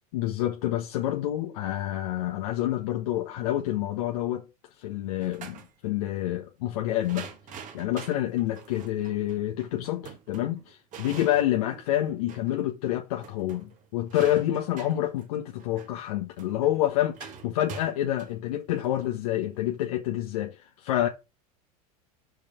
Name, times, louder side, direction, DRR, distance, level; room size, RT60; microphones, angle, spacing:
voice 1, 0.1-4.5 4.8-21.1, left 13 dB, 65° left, 1.2 m, -28 dB
sound 1, 5.2-5.7 7.0-12.6 12.9-13.0 13.2-19.7, right 6 dB, 40° right, 1.9 m, -45 dB
6.3 x 5.1 x 6.7 m
hypercardioid pair, 95°, 20 cm